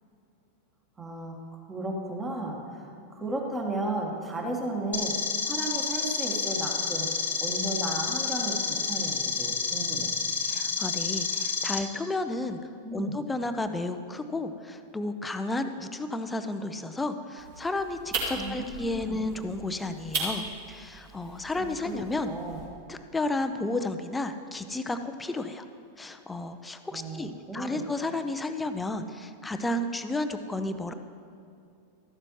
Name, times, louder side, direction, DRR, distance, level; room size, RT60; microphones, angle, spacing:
voice 1, 1.0-1.4 1.7-5.1 5.5-7.1 7.4-10.1 12.8-13.2 18.3-19.2 21.6-21.9 22.2-22.7 26.9-27.8, right 2 dB, 15° right, 0 dB, 1.7 m, -34 dB
sound 1, 4.9-11.8, left 5 dB, 70° left, 1.2 m, -29 dB
voice 2, 10.5-22.3 22.9-25.6 26.0-30.9, left 2 dB, 10° left, 8 dB, 0.6 m, -32 dB
sound 2, 17.4-22.7, right 3 dB, 50° right, 2.6 m, -37 dB
14.0 x 11.5 x 3.2 m, 2.5 s
figure-of-eight pair, 90°, 0 cm